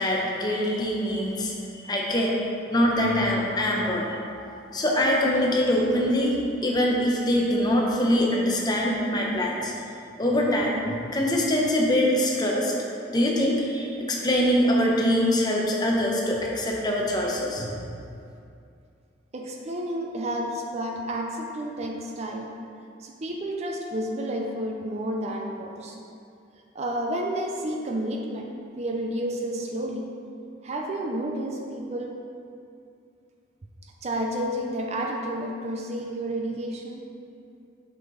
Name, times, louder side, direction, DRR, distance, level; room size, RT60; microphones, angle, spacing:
voice 1, 0.0-2.4 2.7-4.1 4.4-9.7 10.2-12.7 13.1-17.8, left 1 dB, 20° left, -2 dB, 0.7 m, -24 dB
voice 2, 19.3-22.5 23.0-26.0 26.7-28.5 28.8-30.1 30.6-32.2 34.0-37.0, right 1 dB, 35° right, 1 dB, 0.4 m, -31 dB
6.3 x 5.4 x 3.1 m, 2.5 s
head